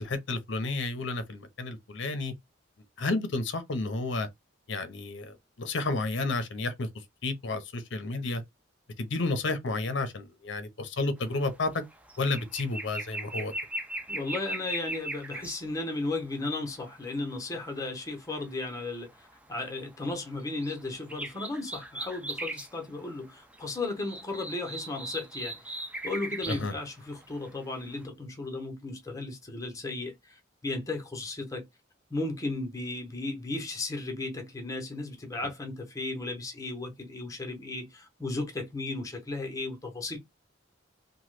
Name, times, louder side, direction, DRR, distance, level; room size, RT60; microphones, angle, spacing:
voice 1, 0.0-2.3 3.0-4.3 4.7-6.9 7.2-8.4 9.0-11.8 12.2-13.5 26.5-26.7, left 3 dB, 65° left, 0.6 m, -31 dB
sound 1, 11.2-11.4 11.7-15.6 16.4-17.2 19.1-19.3 19.8-20.8 21.1-22.7 23.1-23.2 23.4-26.7 27.1-27.8 28.0-28.1, right 1 dB, 5° right, 0.4 m, -38 dB
voice 2, 14.1-25.8 26.0-31.7 32.1-40.2, left 2 dB, 15° left, 0.8 m, -35 dB
2.9 x 2.2 x 3.2 m
head